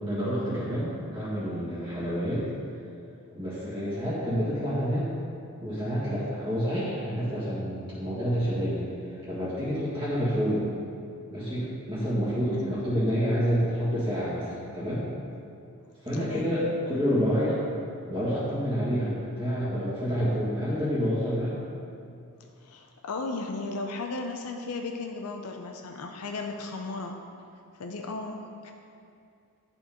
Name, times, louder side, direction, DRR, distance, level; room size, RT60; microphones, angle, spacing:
voice 1, 0.0-2.5 3.3-5.1 5.6-8.9 9.3-10.7 11.3-15.0 16.0-17.6 18.1-21.6, equal, 20° right, -12 dB, 1.6 m, -28 dB
voice 2, 16.1-16.5 22.6-27.2 27.8-28.7, left 3 dB, 80° left, 3 dB, 0.5 m, -35 dB
10.5 x 4.5 x 3.7 m, 2.5 s
head